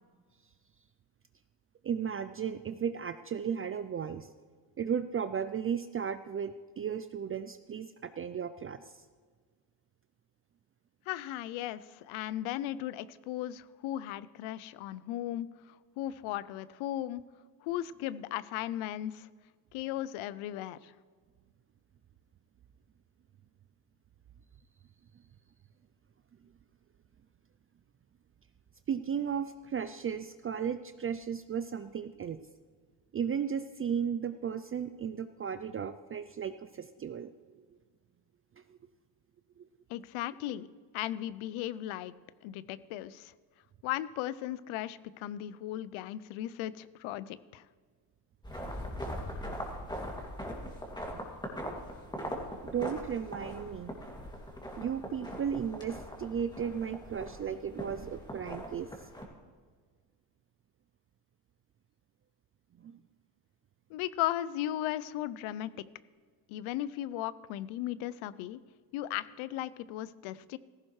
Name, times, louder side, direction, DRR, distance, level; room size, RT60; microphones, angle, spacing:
voice 1, 1.8-4.3 4.8-9.0 28.9-32.4 33.1-37.3 38.7-38.8 39.6-39.7 51.2-51.3 52.6-53.9 54.8-58.9 62.8-62.9, right 7 dB, 30° right, 11 dB, 0.4 m, -35 dB
voice 2, 11.1-17.2 17.6-19.3 19.7-20.9 39.9-40.7 40.9-42.1 42.4-43.3 43.8-47.6 63.9-65.8 66.5-68.6 68.9-70.6, left 13 dB, 90° left, 17 dB, 0.6 m, -36 dB
sound 1, 48.4-59.2, equal, 10° left, 2.4 m, -41 dB
15.5 x 14.0 x 3.2 m, 1.5 s
cardioid pair, 100°, 47 cm